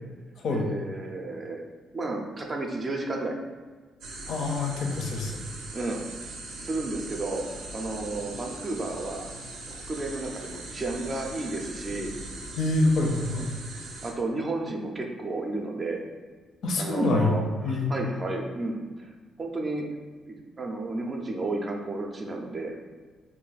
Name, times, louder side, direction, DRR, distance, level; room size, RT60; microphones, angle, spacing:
voice 1, 0.5-1.6 1.9-3.4 5.7-6.0 6.6-7.4 7.7-9.3 9.7-12.1 14.0-16.0 16.8-19.1 19.4-19.8 20.3-22.7, right 2 dB, 30° right, 1 dB, 0.4 m, -32 dB
sound 1, 4.0-14.1, right 2 dB, 85° right, 0.5 m, -40 dB
voice 2, 4.3-5.3 12.6-13.5 16.6-17.4 17.6-17.9, left 2 dB, 65° left, 1 dB, 0.5 m, -25 dB
2.6 x 2.3 x 3.9 m, 1.5 s
cardioid pair, 90°, 0 cm